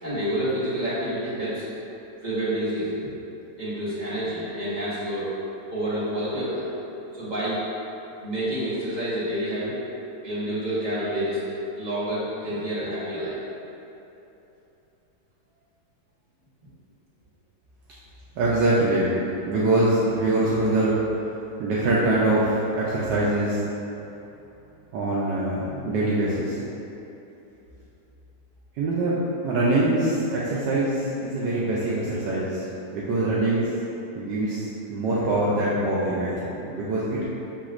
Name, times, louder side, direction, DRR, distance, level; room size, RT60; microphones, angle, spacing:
voice 1, 0.0-1.7 2.2-2.9 3.6-5.3 5.7-6.7 7.1-7.6 8.2-9.8 10.2-11.4 11.8-13.4, right 1 dB, 30° right, -12 dB, 1.0 m, -28 dB
voice 2, 18.4-19.1 19.5-20.9 21.6-23.6 24.9-26.6 28.8-29.2 29.4-32.6 32.9-33.7 34.1-37.2, right 2 dB, 75° right, -7 dB, 1.2 m, -23 dB
6.7 x 3.0 x 2.4 m, 2.9 s
omnidirectional pair, 2.0 m